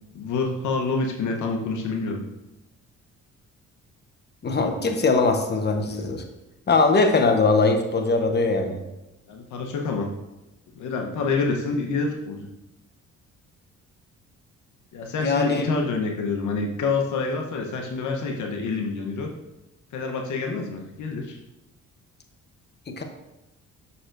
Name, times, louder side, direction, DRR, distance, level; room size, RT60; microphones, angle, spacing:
voice 1, 0.1-2.2 9.3-10.1 10.8-12.5 14.9-19.3 19.9-21.4, left 4 dB, 75° left, 1 dB, 1.0 m, -27 dB
voice 2, 4.4-6.2 6.7-8.8 15.2-15.7 22.9-23.0, left 3 dB, 35° left, 5 dB, 1.0 m, -21 dB
6.9 x 6.6 x 2.6 m, 0.95 s
cardioid pair, 90°, 30 cm